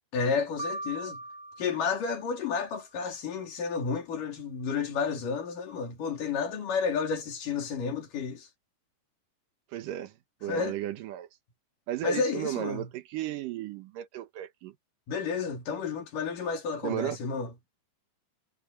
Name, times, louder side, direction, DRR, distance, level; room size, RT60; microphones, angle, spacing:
voice 1, 0.1-1.2 1.6-8.5 10.5-10.7 12.0-12.9 15.1-17.5, left 5 dB, 80° left, 4.7 m, -31 dB
sound 1, 0.6-2.7, right 1 dB, 15° right, 2.3 m, -40 dB
voice 2, 9.7-11.3 11.9-14.8 16.8-17.2, right 12 dB, 90° right, 2.8 m, -34 dB
omnidirectional pair, 3.7 m